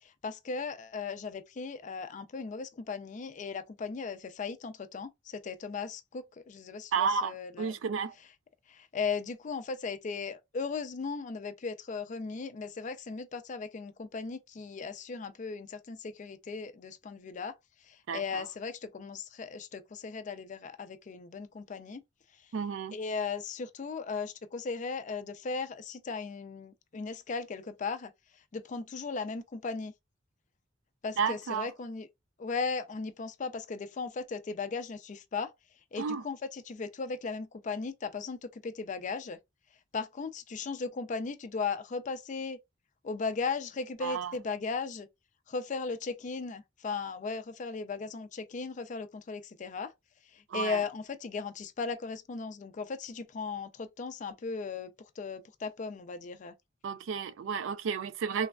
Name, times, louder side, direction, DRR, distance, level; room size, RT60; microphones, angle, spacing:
voice 1, 0.0-7.8 8.7-17.6 17.9-22.0 22.9-28.1 28.5-29.9 31.0-32.1 32.4-35.5 35.9-39.4 39.9-42.6 43.0-45.1 45.5-49.9 50.3-56.5, left 4 dB, 40° left, 0.4 m, -37 dB
voice 2, 6.9-8.1 18.1-18.5 22.5-22.9 31.2-31.7 36.0-36.2 44.0-44.3 50.5-50.8 56.8-58.5, right 6 dB, 80° right, 0.4 m, -32 dB
3.2 x 2.2 x 2.3 m
head